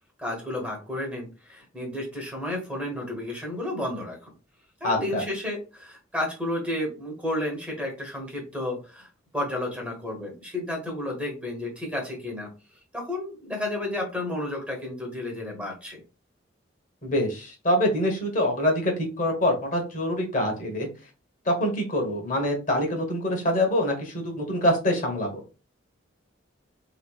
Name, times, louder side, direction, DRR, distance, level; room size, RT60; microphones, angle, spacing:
voice 1, 0.2-4.3 4.8-9.1 9.3-12.5 12.9-16.0, left 1 dB, 5° right, -1 dB, 1.1 m, -32 dB
voice 2, 4.8-5.2 17.0-20.9 21.4-25.4, left 1 dB, 40° left, 2 dB, 1.2 m, -25 dB
4.1 x 3.0 x 2.3 m, 0.32 s
head